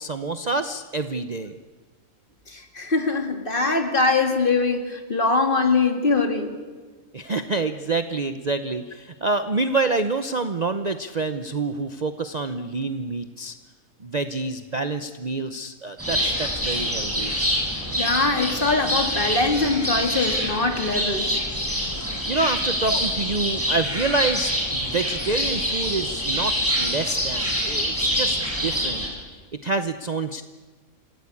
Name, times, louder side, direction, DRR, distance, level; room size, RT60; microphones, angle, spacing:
voice 1, 0.0-1.6 7.1-13.5 14.0-17.3 22.3-29.0 29.6-30.4, right 3 dB, 35° right, 9 dB, 0.7 m, -27 dB
voice 2, 2.5-6.6 18.0-21.3 22.9-23.0, left 3 dB, 35° left, 5 dB, 2.3 m, -22 dB
sound 1, 16.0-29.1, equal, 10° right, 6.9 m, -26 dB
27.0 x 17.0 x 8.5 m, 1.4 s
omnidirectional pair, 1.5 m